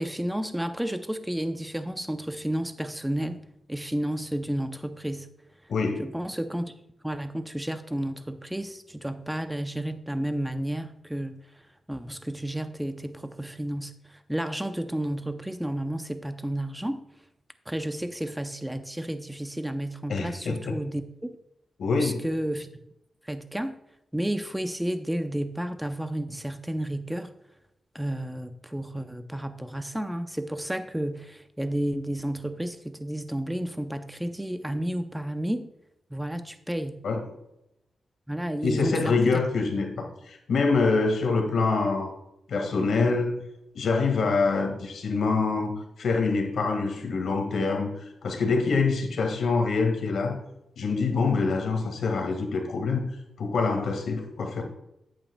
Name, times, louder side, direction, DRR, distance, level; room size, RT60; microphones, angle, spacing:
voice 1, 0.0-3.4 3.7-5.3 6.0-6.7 7.0-11.5 11.9-17.0 17.7-21.4 22.0-22.7 23.2-23.8 24.1-27.3 27.9-35.7 36.1-37.0 38.3-39.4, right 1 dB, 5° right, 9 dB, 0.6 m, -31 dB
voice 2, 5.7-6.1 20.1-20.8 21.8-22.3 37.0-37.2 38.6-42.1 42.5-43.4 43.7-45.7 46.0-50.4 50.8-53.0 53.4-54.6, left 4 dB, 80° left, 4 dB, 1.8 m, -25 dB
9.8 x 8.6 x 2.3 m, 0.84 s
wide cardioid pair, 150°, 0 cm